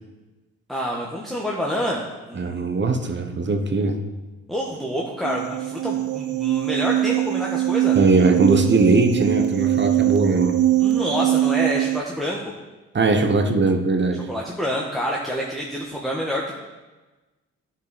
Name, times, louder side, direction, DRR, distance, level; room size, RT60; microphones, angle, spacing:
voice 1, 0.7-2.6 4.5-8.0 10.8-12.4 14.3-16.5, equal, ahead, -4 dB, 1.4 m, -27 dB
voice 2, 2.3-4.0 7.9-10.6 12.9-14.3, right 3 dB, 35° right, 7 dB, 1.2 m, -20 dB
sound 1, 5.2-12.0, right 14 dB, 65° right, 0.4 m, -22 dB
10.5 x 5.6 x 4.2 m, 1.2 s
hypercardioid pair, 50°, 33 cm